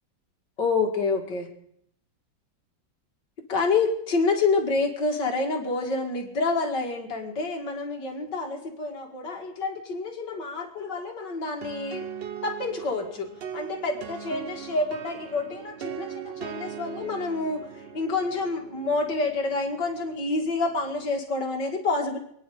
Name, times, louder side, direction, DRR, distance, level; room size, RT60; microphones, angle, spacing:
voice 1, 0.6-1.5 3.5-12.1 12.4-22.2, left 3 dB, 65° left, 2 dB, 2.9 m, -28 dB
sound 1, 11.6-21.2, right 8 dB, 65° right, 0.6 m, -40 dB
27.5 x 9.9 x 4.9 m, 0.70 s
omnidirectional pair, 2.1 m